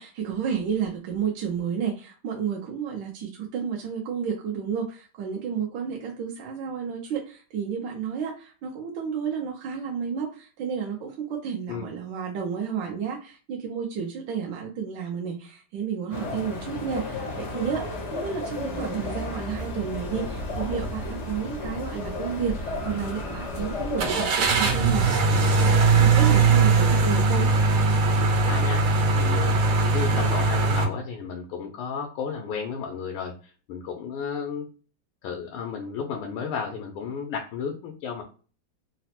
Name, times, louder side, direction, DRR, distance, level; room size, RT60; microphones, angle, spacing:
voice 1, 0.0-27.5, right 7 dB, 75° right, 0 dB, 1.2 m, -31 dB
sound 1, 16.1-24.3, left 2 dB, 70° left, 0.6 m, -33 dB
sound 2, 20.7-21.0 21.4-21.5 24.0-30.8, right 3 dB, 90° right, 1.6 m, -20 dB
voice 2, 28.5-28.8 29.1-34.7 35.2-38.2, left 6 dB, 90° left, 1 dB, 1.5 m, -33 dB
3.9 x 2.0 x 2.7 m, 0.37 s
omnidirectional pair, 2.3 m